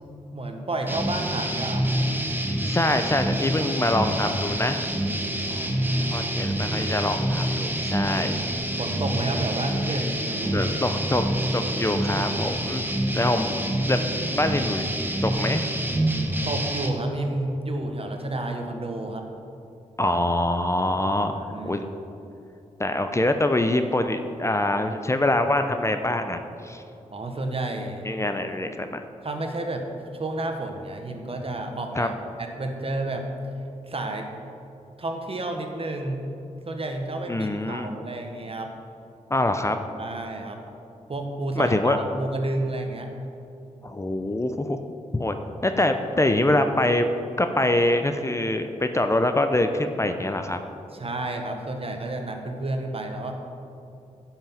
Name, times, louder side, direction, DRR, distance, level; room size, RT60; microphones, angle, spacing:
voice 1, 0.3-1.9 5.5-6.6 8.8-10.7 16.4-19.3 21.1-21.9 27.1-28.1 29.2-33.3 33.9-34.3 35.0-36.3 36.6-38.7 40.0-40.6 41.1-43.1 50.9-53.3, right 2 dB, 45° right, 4 dB, 1.3 m, -31 dB
sound 1, 0.9-16.9, right 1 dB, 15° right, 1.2 m, -27 dB
voice 2, 2.6-4.8 6.1-8.3 10.4-11.2 11.5-12.9 13.1-14.9 15.2-15.7 20.0-21.4 21.6-21.8 22.8-26.8 28.0-29.0 31.9-32.1 37.3-37.9 39.3-39.8 41.6-42.0 43.8-44.8 45.1-45.4 45.6-47.1 47.4-50.6, left 1 dB, 20° left, 7 dB, 0.6 m, -24 dB
10.5 x 5.9 x 5.8 m, 2.8 s
cardioid pair, 50°, 14 cm